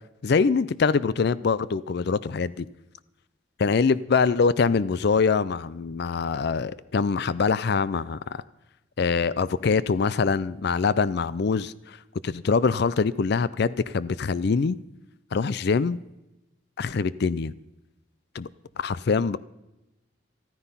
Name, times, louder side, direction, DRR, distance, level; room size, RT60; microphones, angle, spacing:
voice 1, 0.2-2.7 3.6-8.4 9.0-12.0 12.2-14.8 15.3-16.0 16.8-17.5 18.3-18.5 18.8-19.4, left 5 dB, 55° left, 18 dB, 0.4 m, -24 dB
14.0 x 13.5 x 5.6 m, 0.96 s
head